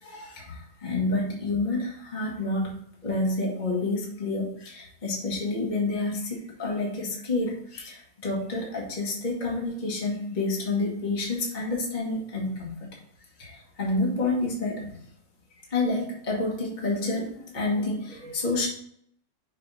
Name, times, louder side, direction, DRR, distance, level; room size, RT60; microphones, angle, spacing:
voice 1, 0.0-2.7 3.0-12.7 13.4-15.0 15.7-18.7, left 2 dB, 30° left, -3 dB, 1.6 m, -29 dB
6.0 x 3.4 x 5.3 m, 0.66 s
omnidirectional pair, 1.7 m